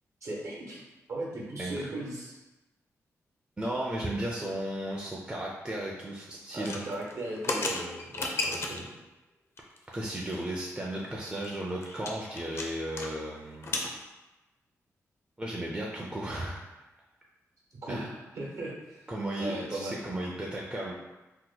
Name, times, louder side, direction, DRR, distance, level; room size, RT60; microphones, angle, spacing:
voice 1, 0.2-0.8 1.1-2.4 6.5-8.9 17.8-18.0 18.3-19.1 19.4-20.0, right 1 dB, 65° right, -3 dB, 0.9 m, -37 dB
voice 2, 3.6-6.8 9.9-13.8 15.4-16.6 17.9-18.1 19.1-20.9, right 1 dB, 20° right, -3 dB, 0.4 m, -35 dB
sound 1, 6.5-8.9 9.6-10.0 10.3-10.4 10.6-10.7 11.1-13.1 13.4-13.9, left 2 dB, 50° left, 0.5 m, -34 dB
2.9 x 2.1 x 3.9 m, 1.1 s
cardioid pair, 90°, 6 cm